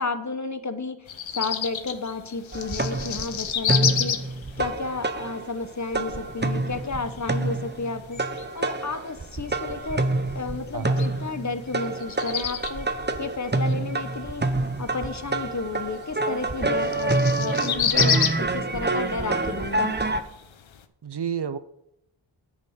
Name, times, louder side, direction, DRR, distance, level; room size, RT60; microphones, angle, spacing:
voice 1, 0.0-4.2 4.6-8.2 8.5-10.0 10.3-14.4 14.8-20.0, left 3 dB, 35° left, 10 dB, 1.1 m, -32 dB
sound 1, 1.1-20.8, left 8 dB, 70° left, 0.9 m, -32 dB
sound 2, 2.5-5.7 5.9-20.2, right 2 dB, 20° right, 0.9 m, -27 dB
voice 2, 21.0-21.6, right 7 dB, 55° right, 13 dB, 0.7 m, -30 dB
9.7 x 5.2 x 6.8 m, 0.80 s
cardioid pair, 50°, 48 cm